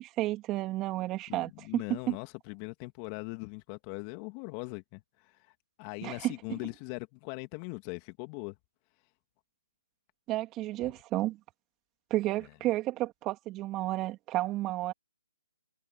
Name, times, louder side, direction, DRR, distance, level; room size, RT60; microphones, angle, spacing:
voice 1, 0.0-2.2 6.0-6.6 10.3-11.4 12.1-14.9, right 16 dB, 20° right, 3.0 m, -32 dB
voice 2, 1.3-5.4 5.8-8.6 10.8-10.9, left 30 dB, 25° left, 2.7 m, -40 dB
figure-of-eight pair, 145°, 0 cm